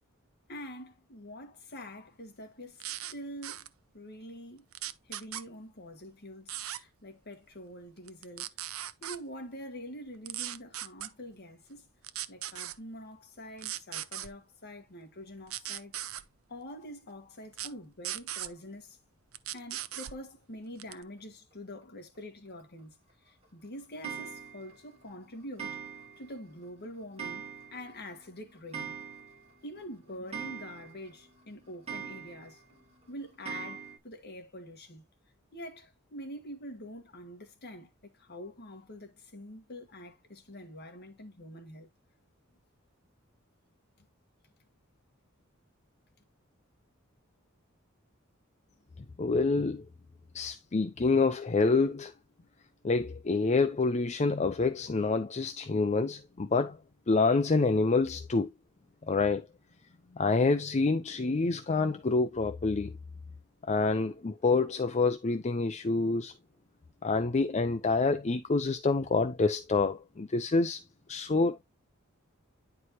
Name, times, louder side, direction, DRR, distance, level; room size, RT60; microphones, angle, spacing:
voice 1, 0.5-2.8 3.1-3.7 3.9-4.6 5.1-8.5 9.0-11.9 12.3-16.0 16.5-19.0 19.5-23.0 23.2-25.8 26.2-28.9 29.6-32.6 33.1-35.0 35.5-41.9, equal, 50° left, 1.7 m, -45 dB
sound 1, 2.8-3.1 3.4-3.7 4.7-5.4 6.5-6.8 8.1-9.2 10.3-11.1 12.0-12.8 13.6-14.3 15.5-16.2 17.5-17.7 18.0-18.5 19.3-20.2 20.8-21.0, right 13 dB, 75° right, 0.6 m, -38 dB
Clock, 24.0-24.8 25.6-26.3 26.6-26.7 27.2-28.0 28.2-28.3 28.5-29.5 29.8-29.9 30.3-31.1 31.9-32.6 33.5-34.0, right 7 dB, 30° right, 2.2 m, -41 dB
voice 2, 49.2-49.9 50.3-52.1 52.8-56.8 57.1-58.5 59.0-59.5 60.2-62.9 63.7-66.3 67.0-70.8 71.1-71.6, left 3 dB, 35° left, 0.5 m, -27 dB
9.7 x 4.7 x 3.0 m
head